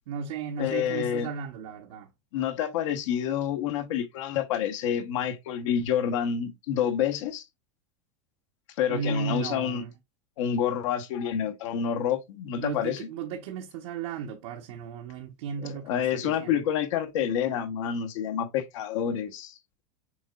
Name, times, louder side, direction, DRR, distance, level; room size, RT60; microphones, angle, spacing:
voice 1, 0.1-2.1 8.9-9.9 12.6-16.6, right 6 dB, 70° right, 0.9 m, -35 dB
voice 2, 0.6-1.3 2.3-7.4 8.8-9.8 10.4-13.1 15.9-19.6, left 9 dB, 70° left, 1.0 m, -28 dB
6.1 x 3.7 x 2.3 m
supercardioid pair, 145°, 16 cm